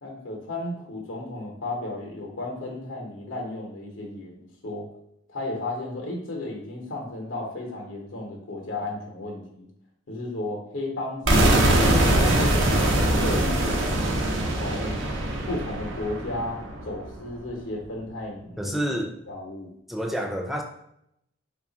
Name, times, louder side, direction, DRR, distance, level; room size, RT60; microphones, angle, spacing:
voice 1, 0.0-4.9 5.3-9.7 10.1-12.4 12.9-13.9 14.5-15.0 15.5-18.8 19.3-19.7, left 2 dB, 80° left, 0 dB, 0.8 m, -34 dB
sound 1, 11.3-17.1, right 1 dB, 75° right, 0.7 m, -22 dB
voice 2, 18.6-19.1 19.9-20.6, equal, ahead, 2 dB, 0.4 m, -28 dB
3.1 x 2.4 x 3.8 m, 0.75 s
head